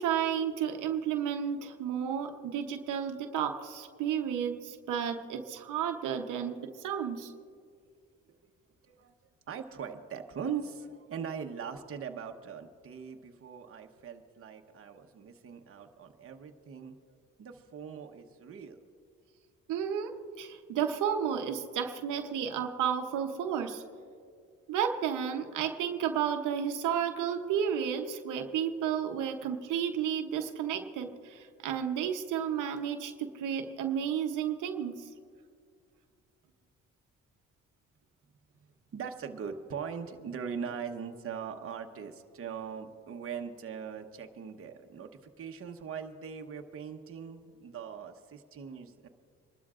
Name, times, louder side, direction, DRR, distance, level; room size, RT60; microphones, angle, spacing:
voice 1, 0.0-7.3 19.7-20.1 20.4-23.8 24.7-35.1, right 8 dB, 85° right, 5 dB, 0.9 m, -32 dB
voice 2, 9.5-16.9 17.4-18.8 38.9-49.1, right 7 dB, 50° right, 4 dB, 1.0 m, -41 dB
27.5 x 12.5 x 2.5 m, 2.2 s
cardioid pair, 90°, 30 cm